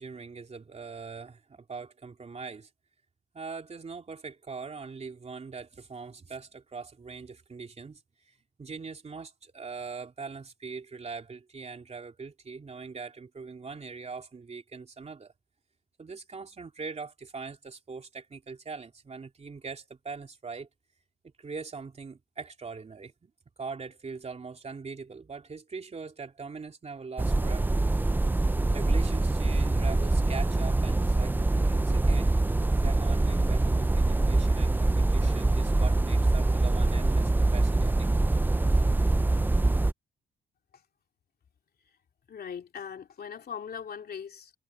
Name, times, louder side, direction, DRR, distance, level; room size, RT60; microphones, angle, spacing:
voice 1, 0.0-2.7 3.3-15.3 16.0-20.7 21.4-23.3 23.6-27.8 28.7-32.4 32.7-38.1, right 4 dB, 35° right, 3.0 m, -42 dB
sound 1, 27.2-39.9, right 2 dB, 10° right, 0.5 m, -24 dB
voice 2, 42.3-44.5, left 7 dB, 50° left, 2.8 m, -40 dB
cardioid pair, 90°, 20 cm